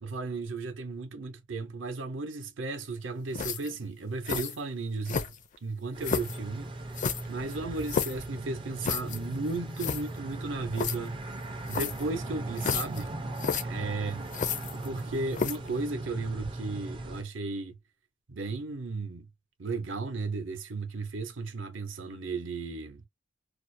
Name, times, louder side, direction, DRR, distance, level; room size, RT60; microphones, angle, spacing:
voice 1, 0.0-5.3 5.6-6.7 7.3-11.3 11.7-13.1 13.6-14.3 14.7-17.8 18.3-19.3 19.6-23.0, right 3 dB, 70° right, 0.7 m, -35 dB
sound 1, 3.3-3.8 4.3-4.6 5.1-5.6 6.0-6.4 7.0-8.2 8.8-9.2 9.5-9.6 9.8-10.0 10.8-11.0 11.7-12.1 12.6-13.0 13.4-13.6 14.3-15.0 15.3-15.7, left 6 dB, 40° left, 0.4 m, -31 dB
sound 2, 5.9-17.2, right 2 dB, 25° right, 0.4 m, -38 dB
2.4 x 2.0 x 2.5 m
head